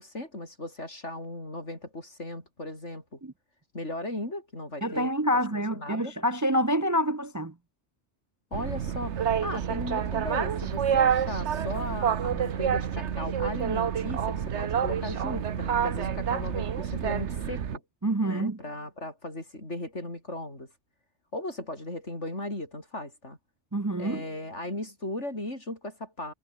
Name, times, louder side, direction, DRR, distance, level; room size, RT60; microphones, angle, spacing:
voice 1, 0.0-3.2 3.7-5.1 5.5-6.1 8.5-17.8 18.2-20.7 21.3-23.4 24.0-26.3, left 1 dB, 80° left, 7.5 m, -37 dB
voice 2, 4.8-7.5 18.0-18.6 23.7-24.2, equal, 20° right, 0.6 m, -27 dB
Boat Water vehicle, 8.5-17.8, right 8 dB, 75° right, 1.3 m, -28 dB
omnidirectional pair, 1.2 m